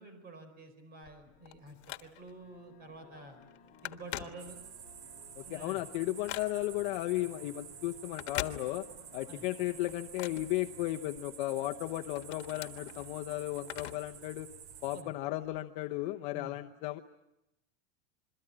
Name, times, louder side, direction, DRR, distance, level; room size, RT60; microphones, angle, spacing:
voice 1, 0.0-3.4 3.8-4.6 5.4-5.8 9.3-9.4 14.9-15.1 16.3-16.6, right 2 dB, 30° right, 9 dB, 4.8 m, -49 dB
Telephone, 1.0-2.5 2.9-3.2 3.4-4.9 5.3-6.9 8.0-9.1 9.5-11.2 11.7-14.2 14.5-14.6 15.5-15.6, left 16 dB, 80° left, 1.5 m, -43 dB
sound 1, 1.3-13.9, left 5 dB, 25° left, 7.8 m, -60 dB
sound 2, 4.4-15.0, right 8 dB, 85° right, 2.8 m, -50 dB
voice 2, 5.4-8.8 9.1-14.5 14.8-17.0, left 17 dB, 50° left, 4 dB, 1.0 m, -35 dB
27.5 x 22.5 x 8.7 m, 0.88 s
supercardioid pair, 165°, 33 cm